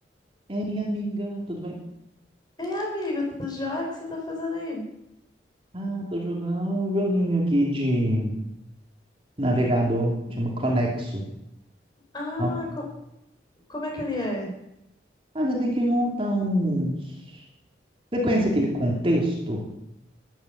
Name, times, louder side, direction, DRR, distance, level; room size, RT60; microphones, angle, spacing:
voice 1, 0.5-1.8 5.7-8.3 9.4-11.2 12.4-12.5 15.3-17.0 18.1-19.6, equal, 30° right, -1 dB, 2.8 m, -25 dB
voice 2, 2.6-4.8 12.1-12.8 13.7-14.5, left 2 dB, 25° left, 0 dB, 4.7 m, -30 dB
14.0 x 11.0 x 7.1 m, 0.85 s
head